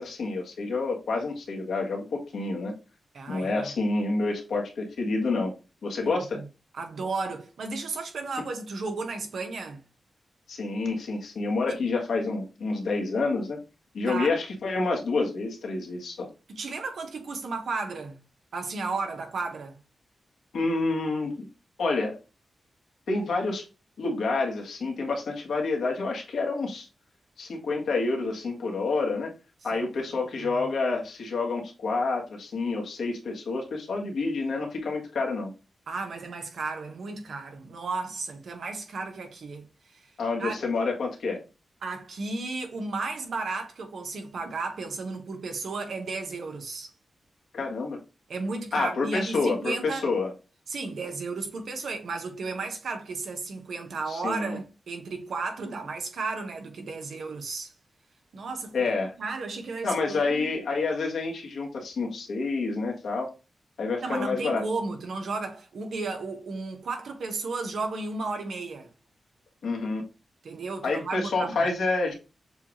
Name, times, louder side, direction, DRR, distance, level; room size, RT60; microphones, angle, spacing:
voice 1, 0.0-2.7 3.3-5.5 5.8-6.4 10.5-13.6 13.9-16.3 20.5-21.5 21.8-22.2 23.1-23.6 24.0-26.9 27.4-29.3 29.6-35.5 40.2-41.4 47.5-48.0 48.7-50.3 54.1-54.6 58.7-59.1 59.8-63.3 63.8-64.6 69.6-70.0 70.8-72.1, left 3 dB, 85° left, 1.3 m, -28 dB
voice 2, 3.1-3.7 6.0-6.5 6.7-9.8 14.0-14.3 16.5-18.2 18.5-19.8 29.7-30.1 30.4-30.5 35.9-40.0 40.4-40.6 41.8-46.9 48.3-50.1 50.7-57.7 58.3-58.8 59.2-60.5 64.0-68.9 70.4-71.6, right 3 dB, 80° right, 1.0 m, -34 dB
6.8 x 2.4 x 3.0 m
cardioid pair, 65°, 0 cm